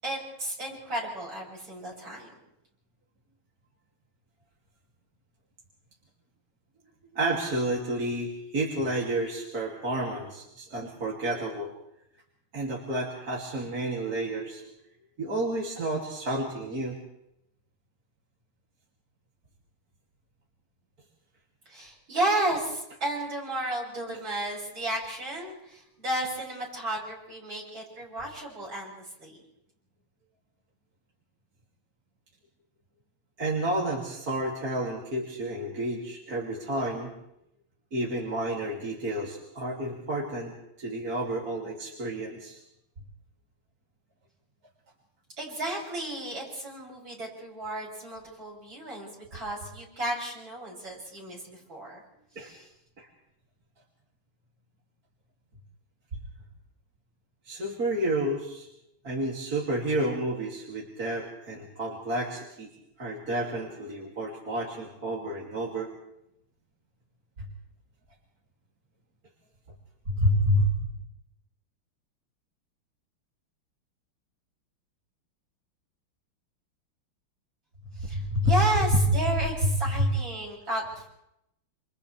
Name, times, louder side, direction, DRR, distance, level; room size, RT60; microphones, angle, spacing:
voice 1, 0.0-2.3 21.7-29.4 45.4-52.0 52.4-52.7 78.0-81.1, right 1 dB, 65° right, -3 dB, 8.6 m, -33 dB
voice 2, 7.1-11.7 12.5-14.7 15.2-16.9 33.4-37.1 37.9-40.5 40.8-42.6 52.3-52.5 53.0-53.1 57.4-58.7 59.0-62.7 63.0-65.9 67.4-67.5 70.1-70.9 78.0-78.5 80.0-80.1, right 1 dB, 45° right, -3 dB, 3.4 m, -30 dB
28.5 x 28.5 x 3.5 m, 0.81 s
omnidirectional pair, 2.3 m